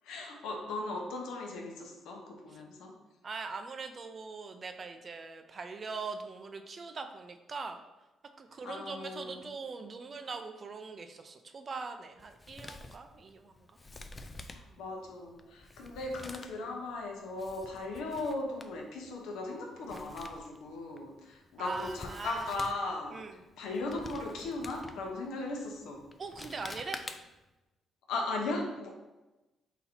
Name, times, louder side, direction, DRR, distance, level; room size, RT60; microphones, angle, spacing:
voice 1, 0.0-2.9 8.6-9.4 14.5-23.2 23.6-26.0 28.1-28.9, left 2 dB, 90° left, 1 dB, 0.8 m, -37 dB
voice 2, 3.2-7.8 8.4-13.8 14.7-14.8 21.6-22.5 23.1-23.4 26.2-27.0, right 4 dB, 40° right, 7 dB, 0.4 m, -42 dB
Male speech man speaking, 12.2-27.5, left 2 dB, 25° left, 0.3 m, -49 dB
4.1 x 2.8 x 4.2 m, 1.0 s
cardioid pair, 90°, 0 cm